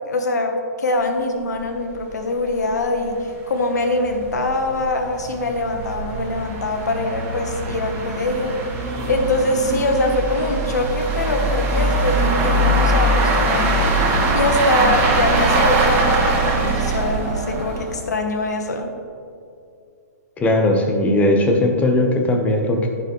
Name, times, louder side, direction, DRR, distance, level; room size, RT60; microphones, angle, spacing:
voice 1, 0.1-8.6 9.1-18.9, left 2 dB, 75° left, 4 dB, 1.2 m, -23 dB
sound 1, 1.6-1.7 1.9-2.0 2.5-2.6 2.9-3.0 3.6-18.0, right 2 dB, 25° right, 2.1 m, -21 dB
voice 2, 20.4-22.9, left 1 dB, 15° left, 3 dB, 1.2 m, -18 dB
15.5 x 5.6 x 3.3 m, 2.4 s
hypercardioid pair, 125°, 9 cm